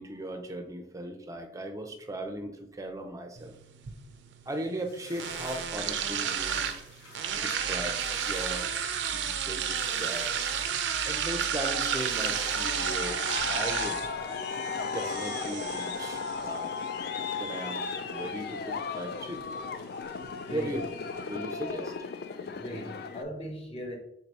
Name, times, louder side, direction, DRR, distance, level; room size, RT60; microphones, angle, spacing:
voice 1, 0.0-3.5 4.5-6.7 7.3-8.7 9.1-14.0 14.8-16.7 17.0-17.1 17.4-19.4 20.5-20.8 21.1-22.1, right 1 dB, 20° right, 4 dB, 0.5 m, -38 dB
sound 1, 3.4-21.4, right 7 dB, 75° right, 0.5 m, -34 dB
sound 2, 4.9-13.4, left 1 dB, 75° left, 1.5 m, -49 dB
Aircraft, 11.6-23.2, left 5 dB, 55° left, 0.3 m, -36 dB
voice 2, 20.4-20.7 22.4-24.0, equal, 35° left, 1 dB, 0.9 m, -39 dB
3.7 x 2.7 x 4.6 m, 0.77 s
head